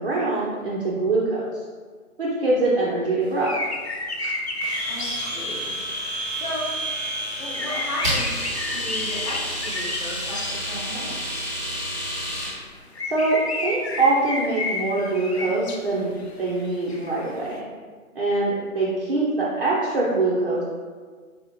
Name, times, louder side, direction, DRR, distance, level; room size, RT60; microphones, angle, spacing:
voice 1, 0.0-1.5 2.2-3.5 13.1-16.1 16.4-17.6 18.2-20.6, right 2 dB, 40° right, -6 dB, 0.6 m, -23 dB
sound 1, 3.3-6.6 6.9-7.0 7.4-11.1 11.7-11.8 12.5-12.6 12.9-17.5, left 2 dB, 50° left, 0.5 m, -31 dB
Domestic sounds home sounds, 4.6-12.6, equal, 10° right, 0.8 m, -29 dB
voice 2, 4.9-5.8 6.3-6.6 7.4-8.3 8.6-11.5, left 1 dB, 25° left, -8 dB, 0.8 m, -35 dB
4.6 x 2.8 x 3.0 m, 1.5 s
figure-of-eight pair, 145°, 43 cm